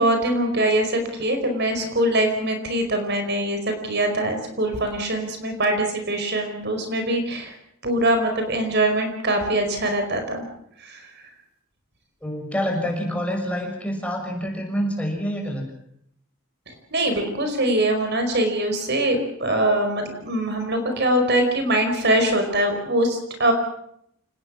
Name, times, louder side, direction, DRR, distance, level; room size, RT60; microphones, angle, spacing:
voice 1, 0.0-7.5 7.8-10.4 10.8-11.1 13.9-14.0 16.7-23.5, right 1 dB, 50° right, 6 dB, 4.9 m, -23 dB
voice 2, 12.2-15.7, equal, 5° left, 1 dB, 6.5 m, -27 dB
29.0 x 19.5 x 6.3 m, 0.71 s
head